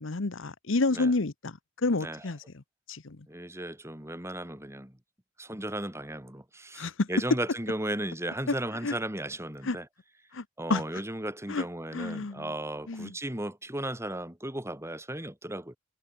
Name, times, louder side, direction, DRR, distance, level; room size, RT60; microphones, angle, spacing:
voice 1, 0.0-2.6 2.9-3.3 6.7-7.1 8.8-8.9 9.6-9.8 10.3-10.4 10.7-10.8 11.5-11.6 11.9-12.5 12.9-13.1, left 3 dB, 75° left, 1.0 m, -29 dB
voice 2, 3.3-5.0 5.4-9.9 10.6-15.8, right 1 dB, 15° right, 4.2 m, -35 dB
head